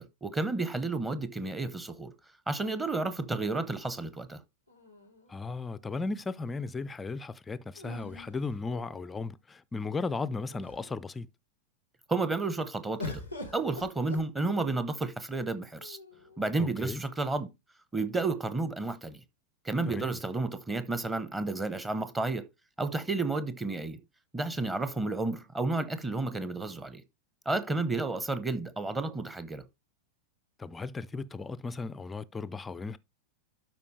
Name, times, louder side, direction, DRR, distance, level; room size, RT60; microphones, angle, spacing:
voice 1, 0.0-2.1 2.5-4.4 12.1-13.2 13.5-16.0 16.4-17.5 17.9-19.2 19.6-22.5 22.8-24.0 24.3-27.0 27.5-29.6, right 3 dB, 10° right, 0.9 m, -31 dB
sound 1, 4.7-5.8 7.8-9.3 10.1-10.2 10.4-11.0 13.0-14.9 15.8-16.5, left 2 dB, 85° right, 2.5 m, -44 dB
voice 2, 5.3-11.3 16.6-17.0 19.8-20.2 30.6-33.0, left 3 dB, 15° left, 0.4 m, -36 dB
12.5 x 4.6 x 3.2 m
figure-of-eight pair, 90°, 0 cm